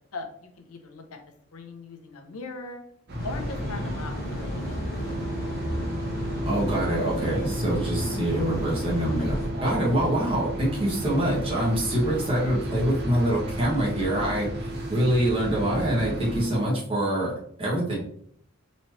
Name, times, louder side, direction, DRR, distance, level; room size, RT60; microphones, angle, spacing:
voice 1, 0.1-1.2 1.5-2.9 3.2-5.5, left 3 dB, 90° left, 5 dB, 0.7 m, -40 dB
sound 1, 3.1-16.5, equal, 50° right, 0.7 m, -33 dB
sound 2, 3.2-9.5, left 1 dB, 50° left, 1.0 m, -36 dB
sound 3, 5.0-16.6, right 2 dB, 10° right, 0.9 m, -38 dB
voice 2, 6.4-17.3 17.6-18.0, right 1 dB, 25° right, -6 dB, 1.4 m, -25 dB
4.0 x 3.1 x 3.0 m, 0.66 s
head